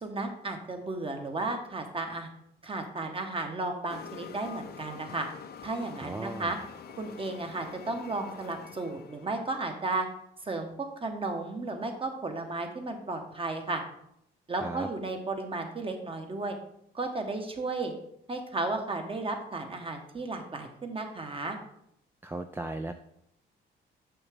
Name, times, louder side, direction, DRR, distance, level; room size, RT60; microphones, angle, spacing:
voice 1, 0.0-2.3 2.6-5.3 5.6-6.6 7.0-10.1 10.4-13.8 14.5-16.6 16.9-17.9 18.3-21.6, right 3 dB, 25° right, 5 dB, 1.1 m, -34 dB
sound 1, 3.9-9.4, left 7 dB, 50° left, 0.6 m, -46 dB
voice 2, 6.0-6.5 14.6-14.9 22.2-22.9, right 2 dB, 10° right, 7 dB, 0.3 m, -36 dB
6.9 x 5.7 x 3.5 m, 0.75 s
cardioid pair, 90°, 20 cm